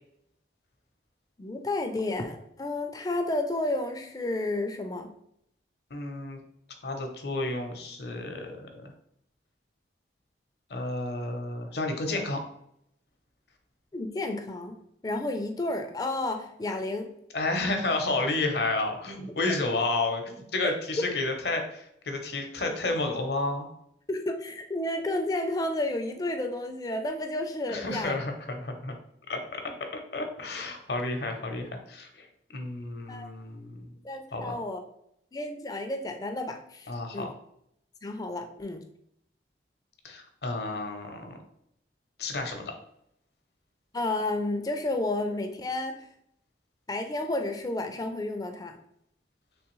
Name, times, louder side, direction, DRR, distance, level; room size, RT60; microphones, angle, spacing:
voice 1, 1.4-5.1 13.9-14.8 15.0-17.1 20.6-21.1 24.1-28.2 33.1-33.3 34.0-34.8 35.3-37.3 38.0-38.9 43.9-46.1 46.9-48.8, left 2 dB, 20° left, 5 dB, 0.3 m, -31 dB
voice 2, 5.9-6.4 6.8-8.9 10.7-12.4 17.3-23.7 27.7-28.9 29.3-29.6 30.1-32.3 32.5-33.9 34.3-34.6 36.9-37.3 40.0-41.4 42.2-42.7, left 2 dB, 65° left, 4 dB, 0.7 m, -31 dB
3.5 x 3.1 x 3.0 m, 0.74 s
head